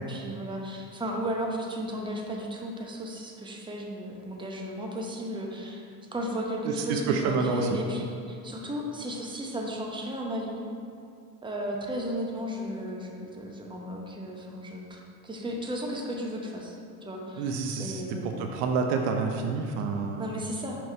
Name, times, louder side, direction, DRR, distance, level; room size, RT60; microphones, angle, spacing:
voice 1, 0.0-5.9 6.1-10.7 11.4-18.4 20.2-20.8, right 1 dB, 10° right, 0 dB, 0.9 m, -34 dB
voice 2, 6.9-7.7 17.4-20.2, right 4 dB, 65° right, 4 dB, 0.7 m, -28 dB
5.7 x 3.1 x 5.3 m, 2.5 s
hypercardioid pair, 75°, 44 cm